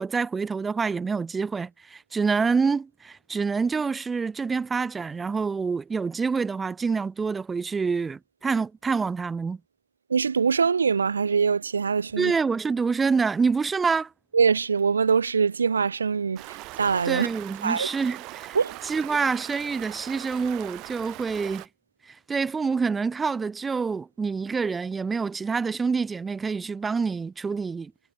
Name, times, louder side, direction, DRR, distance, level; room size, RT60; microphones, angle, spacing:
voice 1, 0.0-9.6 12.2-14.1 17.0-18.6 18.8-21.7 22.1-27.9, right 5 dB, 10° right, 0.5 m, -27 dB
voice 2, 10.1-12.4 14.3-17.3 17.6-17.9 18.5-18.8, right 5 dB, 65° right, 0.5 m, -23 dB
Stream, 16.4-21.7, right 22 dB, 25° right, 1.9 m, -41 dB
figure-of-eight pair, 135°, 0 cm